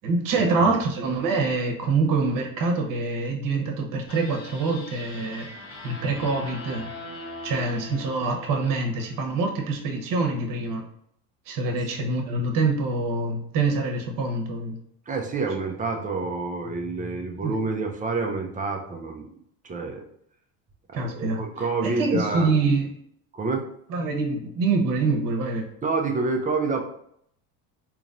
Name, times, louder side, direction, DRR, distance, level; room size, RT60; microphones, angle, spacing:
voice 1, 0.0-5.5 5.8-6.9 7.4-10.8 11.5-14.8 17.4-17.6 20.9-21.4 21.8-22.9 23.9-25.7, right 3 dB, 45° right, 2 dB, 1.0 m, -25 dB
sound 1, 4.1-9.4, left 2 dB, 30° left, 0.9 m, -41 dB
voice 2, 15.1-19.3 19.6-20.0 20.9-22.5 23.3-23.6 25.8-26.8, right 3 dB, 20° right, 3 dB, 0.5 m, -28 dB
4.0 x 3.0 x 2.6 m, 0.70 s
supercardioid pair, 105°, 45 cm